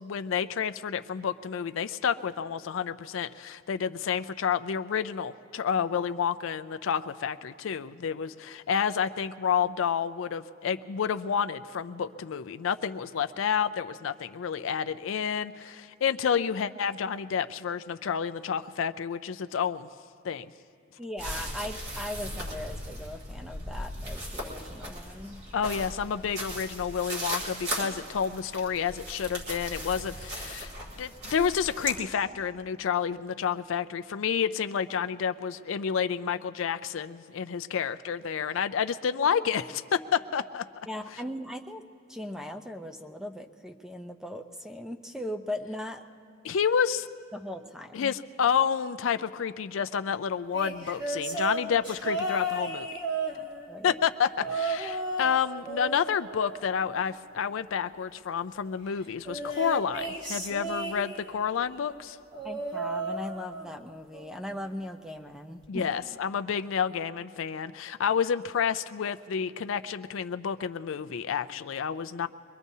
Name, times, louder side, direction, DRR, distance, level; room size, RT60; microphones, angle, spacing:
voice 1, 0.0-19.9 20.2-20.5 25.5-30.7 31.0-40.9 46.4-47.1 47.9-52.9 53.8-62.2 65.7-72.3, left 7 dB, 70° left, 10 dB, 0.4 m, -29 dB
voice 2, 21.0-25.4 40.9-41.8 42.1-46.0 47.3-48.1 53.3-54.0 62.4-65.9, left 1 dB, 5° right, 6 dB, 0.6 m, -39 dB
sound 1, 21.2-32.0, equal, 55° right, 2.7 m, -38 dB
sound 2, 50.5-53.8 54.4-55.4 55.6-57.2 59.2-61.4 62.3-63.8 64.1-64.5 65.6-65.7, right 2 dB, 25° right, 1.5 m, -34 dB
23.0 x 22.5 x 2.7 m, 2.3 s
head